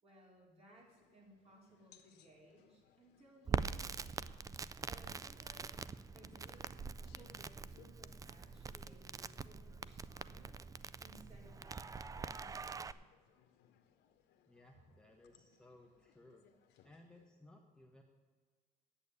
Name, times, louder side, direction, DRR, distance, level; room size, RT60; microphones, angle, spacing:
voice 1, 0.0-4.1 4.8-10.6 11.0-13.0, right 1 dB, 35° right, -2 dB, 4.2 m, -63 dB
sound 1, 0.7-17.3, left 9 dB, 85° left, 1.1 m, -70 dB
Crackle, 3.5-12.9, right 5 dB, 20° right, 0.4 m, -44 dB
voice 2, 14.5-16.4 16.8-18.0, left 1 dB, 5° left, 1 dB, 1.1 m, -61 dB
8.6 x 8.4 x 8.5 m, 1.5 s
cardioid pair, 110°, 17 cm